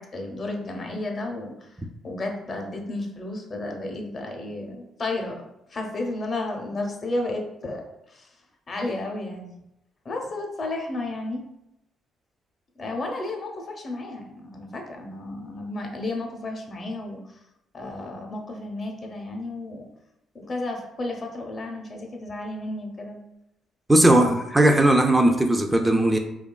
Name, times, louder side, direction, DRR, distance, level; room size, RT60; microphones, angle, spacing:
voice 1, 0.0-1.7 2.0-5.4 5.7-7.8 8.1-8.3 8.7-9.5 10.0-11.4 12.8-17.2 17.7-19.8 20.3-23.2 24.0-24.2, left 2 dB, 45° left, 2 dB, 0.6 m, -32 dB
voice 2, 23.9-26.2, right 1 dB, 15° right, 4 dB, 0.3 m, -18 dB
2.8 x 2.2 x 2.2 m, 0.85 s
supercardioid pair, 65°, 0 cm